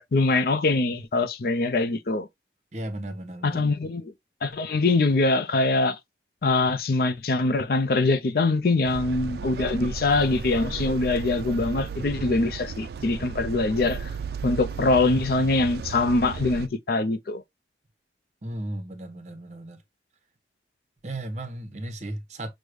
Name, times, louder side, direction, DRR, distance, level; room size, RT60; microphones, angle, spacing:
voice 1, 0.0-2.3 3.4-4.1 4.4-6.0 6.4-14.1 14.4-17.4, left 3 dB, 55° left, 0.4 m, -23 dB
voice 2, 2.7-3.7 18.4-19.8 21.0-22.5, right 1 dB, 40° right, 0.8 m, -35 dB
sound 1, 8.9-16.7, right 5 dB, 60° right, 0.3 m, -34 dB
6.3 x 2.1 x 3.2 m
head